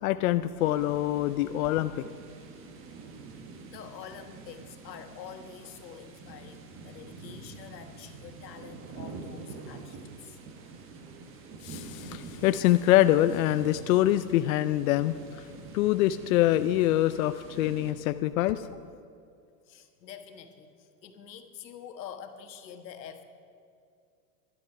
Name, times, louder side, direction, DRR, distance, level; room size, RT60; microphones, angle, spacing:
voice 1, 0.0-1.9 11.6-15.5 15.7-18.7, left 14 dB, 60° left, 11 dB, 0.5 m, -25 dB
sound 1, 0.6-17.9, right 4 dB, 25° right, 1.2 m, -46 dB
voice 2, 3.7-10.4 19.7-23.2, left 8 dB, 85° left, 7 dB, 1.5 m, -46 dB
12.0 x 11.5 x 5.9 m, 2.4 s
supercardioid pair, 145°, 49 cm